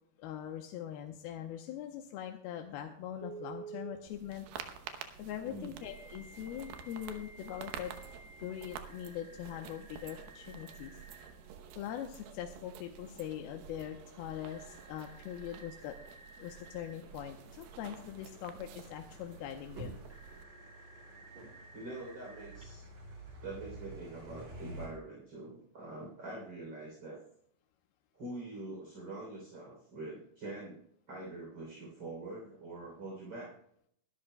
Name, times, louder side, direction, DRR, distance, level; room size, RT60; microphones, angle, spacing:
voice 1, 0.2-4.5 4.8-7.9 8.4-10.9 11.8-16.0 16.4-19.9, left 10 dB, 90° left, 3 dB, 2.7 m, -42 dB
Telephone, 3.2-4.0 5.8-11.3 14.4-17.0 20.1-22.6, right 4 dB, 15° right, 1.8 m, -53 dB
sound 1, 4.1-20.5, right 8 dB, 80° right, 2.7 m, -50 dB
voice 2, 5.4-5.8 21.7-22.9 23.4-27.2 28.1-30.8 31.1-33.6, right 2 dB, 30° right, -2 dB, 3.7 m, -44 dB
sound 2, 17.1-24.9, right 1 dB, 60° right, 5.1 m, -50 dB
22.5 x 12.5 x 2.2 m, 0.69 s
omnidirectional pair, 4.4 m